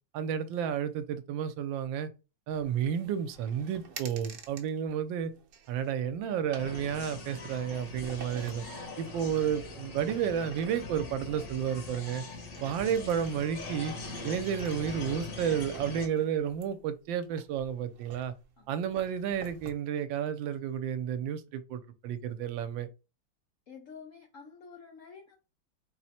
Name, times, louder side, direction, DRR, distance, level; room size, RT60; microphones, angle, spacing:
voice 1, 0.1-2.1 2.5-5.3 5.7-8.6 9.0-12.2 12.6-13.9 14.2-18.3 18.7-22.9, right 8 dB, 80° right, 1.3 m, -31 dB
sound 1, 2.5-19.7, right 6 dB, 60° right, 0.8 m, -51 dB
sound 2, 6.6-16.1, left 3 dB, 55° left, 1.4 m, -42 dB
voice 2, 23.7-25.4, left 5 dB, 80° left, 0.7 m, -49 dB
4.5 x 2.1 x 4.1 m
omnidirectional pair, 2.1 m